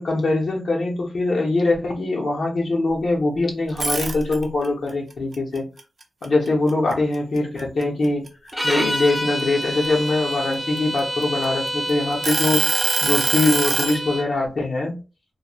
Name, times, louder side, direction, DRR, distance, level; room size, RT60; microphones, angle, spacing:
voice 1, 0.0-5.7 6.2-8.3 8.6-14.9, left 2 dB, 70° left, 0.7 m, -22 dB
sound 1, 3.7-4.7 5.1-6.9 7.4-7.6 8.0-9.9 10.6-11.7 12.2-14.0, right 3 dB, 50° right, 0.5 m, -23 dB
sound 2, 8.5-14.3, equal, 5° left, 0.5 m, -28 dB
3.1 x 2.1 x 2.3 m
wide cardioid pair, 110°, 0 cm